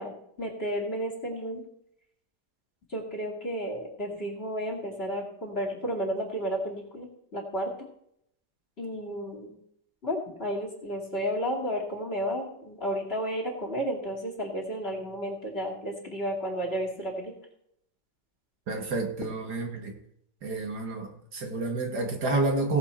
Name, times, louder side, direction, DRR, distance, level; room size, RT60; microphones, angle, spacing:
voice 1, 0.0-1.6 2.9-7.7 8.8-9.5 10.0-17.3, equal, 35° left, 1 dB, 2.7 m, -32 dB
voice 2, 18.7-19.9 20.4-22.8, right 2 dB, 70° right, 3 dB, 2.3 m, -29 dB
17.0 x 7.3 x 4.4 m, 0.74 s
omnidirectional pair, 1.8 m